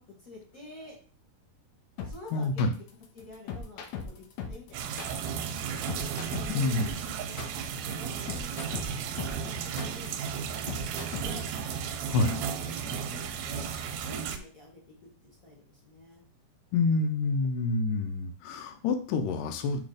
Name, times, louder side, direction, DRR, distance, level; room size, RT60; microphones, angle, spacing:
voice 1, 0.2-1.0 2.0-2.7 3.1-5.9 6.2-10.8 11.2-11.4 12.1-13.7 14.0-15.0 15.2-16.2, left 2 dB, 30° left, -4 dB, 1.7 m, -49 dB
sound 1, 2.0-11.5, left 6 dB, 75° left, 2.1 m, -39 dB
voice 2, 2.3-2.7 6.5-6.9 12.1-12.4 16.7-19.8, left 3 dB, 90° left, 7 dB, 2.4 m, -27 dB
sound 2, 4.7-14.4, right 7 dB, 80° right, 2.2 m, -34 dB
6.2 x 3.5 x 5.0 m, 0.41 s
omnidirectional pair, 3.7 m